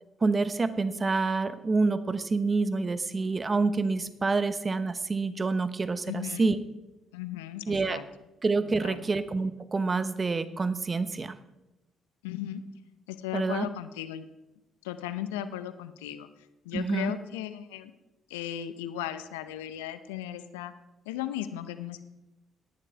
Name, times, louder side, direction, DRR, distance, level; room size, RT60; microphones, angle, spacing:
voice 1, 0.2-6.6 7.7-8.0 8.4-11.3 13.3-13.7 16.7-17.1, right 3 dB, 30° right, 13 dB, 0.9 m, -27 dB
voice 2, 6.0-6.6 7.1-8.0 8.8-9.0 12.2-12.6 13.1-14.2 14.8-16.3 16.6-17.9 18.3-20.7 21.1-22.0, left 11 dB, 80° left, 12 dB, 0.6 m, -36 dB
17.0 x 11.0 x 3.3 m, 0.99 s
hypercardioid pair, 45°, 0 cm